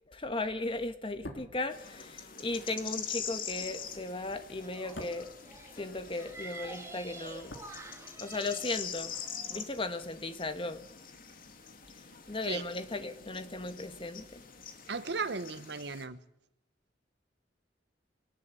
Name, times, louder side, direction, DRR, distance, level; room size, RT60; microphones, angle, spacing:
voice 1, 0.1-5.3 5.8-7.5 8.2-9.1 9.5-10.8 12.3-14.4, left 2 dB, 30° left, 10 dB, 1.4 m, -36 dB
sound 1, 1.1-6.4 6.6-8.5 8.7-8.9, left 1 dB, 65° left, 3.2 m, -50 dB
sound 2, 1.7-16.1, left 7 dB, 50° left, 2.4 m, -44 dB
sound 3, 3.5-9.6, right 2 dB, 15° right, 2.4 m, -49 dB
voice 2, 14.9-16.2, right 4 dB, 65° right, 14 dB, 1.1 m, -36 dB
23.5 x 18.5 x 8.4 m, 0.84 s
head